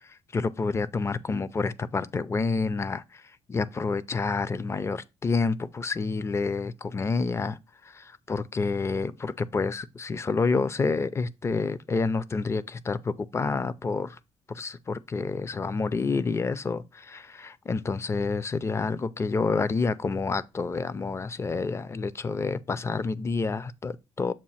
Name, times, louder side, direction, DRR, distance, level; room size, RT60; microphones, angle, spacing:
voice 1, 0.3-3.0 3.5-7.6 7.9-14.2 14.5-24.3, left 4 dB, 25° left, 0.4 m, -28 dB
7.3 x 2.5 x 5.6 m
cardioid pair, 125°, 11 cm